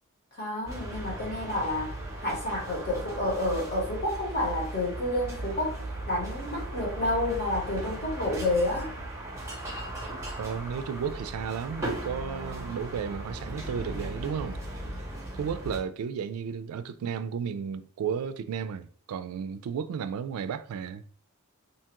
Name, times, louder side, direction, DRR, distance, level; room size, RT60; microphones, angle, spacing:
voice 1, 0.3-1.9 2.2-8.9, left 1 dB, 50° left, 1.2 m, -29 dB
sound 1, 0.6-15.8, right 1 dB, 15° right, 0.6 m, -37 dB
voice 2, 10.4-14.9 15.3-21.0, right 7 dB, 80° right, 0.3 m, -33 dB
2.8 x 2.3 x 2.9 m
head